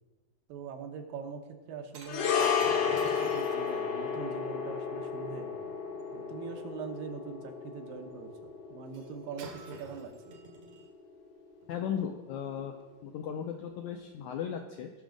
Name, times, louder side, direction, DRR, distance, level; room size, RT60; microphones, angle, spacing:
voice 1, 0.5-5.7 6.1-10.3, right 6 dB, 80° right, 4 dB, 2.7 m, -43 dB
Shatter, 1.9-6.3 8.9-9.1 9.4-10.9 11.6-11.8, right 5 dB, 65° right, 1.7 m, -49 dB
sound 1, 2.1-10.6 10.8-11.0, left 7 dB, 70° left, 2.4 m, -33 dB
voice 2, 11.7-12.7 13.0-14.9, left 8 dB, 90° left, 4 dB, 1.7 m, -36 dB
18.0 x 6.2 x 3.9 m, 1.2 s
omnidirectional pair, 4.1 m